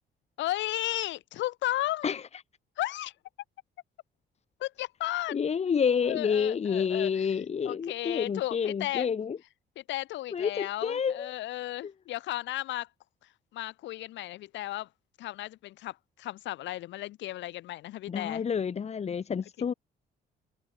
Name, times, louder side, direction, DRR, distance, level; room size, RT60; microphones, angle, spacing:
voice 1, 0.4-2.2 2.8-3.1 4.6-5.4 6.0-7.4 7.6-9.1 9.8-12.9 13.5-14.9 15.2-18.4, left 15 dB, 90° left, 3.8 m, -34 dB
voice 2, 5.3-9.4 10.3-11.3 11.8-11.9 18.1-19.7, left 6 dB, 35° left, 2.4 m, -29 dB
cardioid pair, 135°, 19 cm